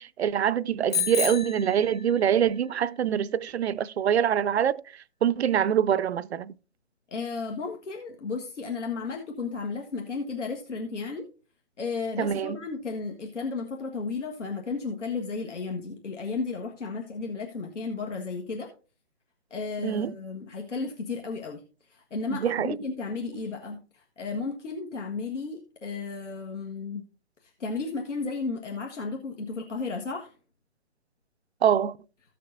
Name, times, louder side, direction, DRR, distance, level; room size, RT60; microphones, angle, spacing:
voice 1, 0.0-4.8 5.2-6.5 12.2-12.6 19.8-20.1 22.3-22.8 31.6-32.0, right 9 dB, 65° right, 0.5 m, -25 dB
Bicycle bell, 0.9-2.5, left 7 dB, 15° left, 0.8 m, -31 dB
voice 2, 7.1-11.3 11.8-18.7 19.5-21.6 21.9-27.1 27.4-30.3, left 4 dB, 80° left, 1.7 m, -34 dB
15.0 x 6.7 x 2.6 m
hypercardioid pair, 155°, 35 cm